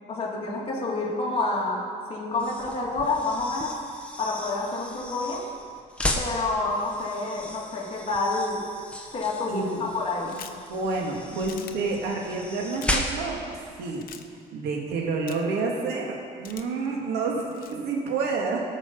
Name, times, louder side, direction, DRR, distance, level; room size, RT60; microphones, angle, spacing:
voice 1, 0.1-3.8 4.2-5.5 6.2-8.7 9.1-10.4, left 3 dB, 35° left, -3 dB, 2.7 m, -28 dB
sound 1, 2.3-13.5, left 1 dB, 5° left, 1.2 m, -35 dB
voice 2, 9.5-9.9 10.3-10.4 10.7-13.4 13.8-14.0 14.5-18.6, right 3 dB, 80° right, 0 dB, 2.1 m, -29 dB
sound 2, 10.3-10.7 11.5-11.7 12.7-13.0 14.0-14.2 15.3-15.6 16.4-16.9 17.5-17.8, left 9 dB, 60° left, 0.8 m, -43 dB
18.5 x 6.3 x 5.4 m, 2.2 s
cardioid pair, 110°, 17 cm